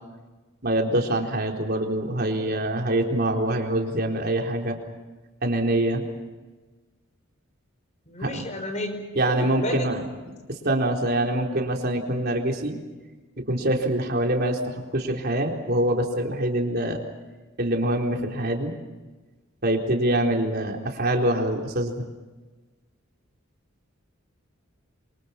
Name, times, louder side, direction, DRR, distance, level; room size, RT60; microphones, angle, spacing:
voice 1, 0.6-4.8 5.4-6.1 8.2-8.4 9.1-10.1 10.5-12.8 13.4-17.0 17.6-18.7 19.6-22.0, right 1 dB, 50° right, 2 dB, 4.0 m, -25 dB
voice 2, 8.1-9.8, left 1 dB, 35° left, 7 dB, 5.3 m, -31 dB
28.0 x 25.5 x 5.9 m, 1.2 s
head